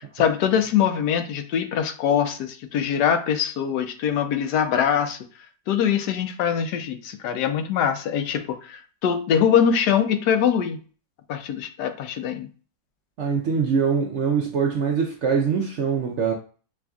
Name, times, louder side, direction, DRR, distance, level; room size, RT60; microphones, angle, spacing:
voice 1, 0.0-5.2 5.7-10.8 11.3-12.5, left 8 dB, 85° left, 1.2 m, -23 dB
voice 2, 13.2-16.3, right 6 dB, 65° right, 0.7 m, -23 dB
5.9 x 2.5 x 2.3 m
omnidirectional pair, 1.7 m